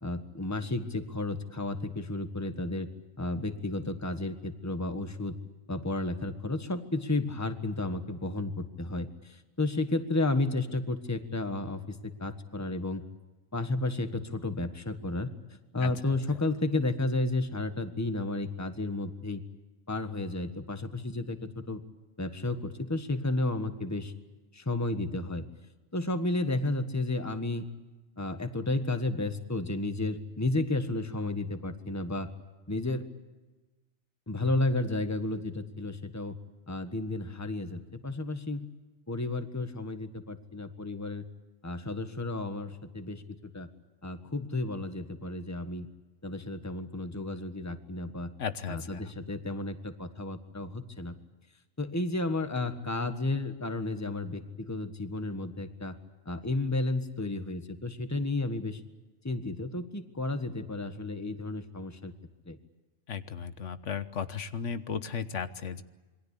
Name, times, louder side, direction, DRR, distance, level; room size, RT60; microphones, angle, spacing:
voice 1, 0.0-2.9 3.2-5.4 5.7-13.0 13.5-19.4 19.9-21.8 22.2-24.1 24.5-25.4 25.9-27.6 28.2-32.3 32.7-33.1 34.3-36.3 36.7-38.7 39.1-41.2 41.6-43.7 44.0-45.9 46.2-48.3 48.7-51.1 51.8-56.0 56.2-58.8 59.2-62.1 62.5-62.6, left 2 dB, 15° left, 9 dB, 1.5 m, -32 dB
voice 2, 15.8-16.2 48.4-49.0 63.1-65.8, left 6 dB, 90° left, 11 dB, 1.5 m, -35 dB
27.5 x 22.5 x 8.4 m, 1.2 s
omnidirectional pair, 1.2 m